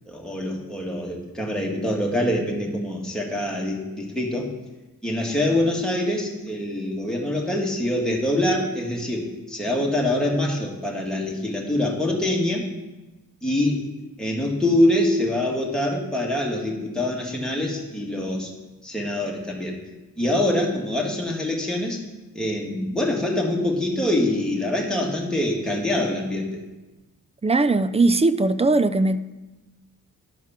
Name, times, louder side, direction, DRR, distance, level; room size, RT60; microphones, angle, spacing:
voice 1, 0.1-4.5 5.0-12.7 13.4-13.8 14.2-18.5 18.8-19.8 20.2-22.0 22.3-26.5, left 1 dB, ahead, 2.1 m, -24 dB
voice 2, 27.4-29.2, right 3 dB, 20° right, 0.4 m, -19 dB
11.5 x 4.7 x 5.9 m
cardioid pair, 65°, 35 cm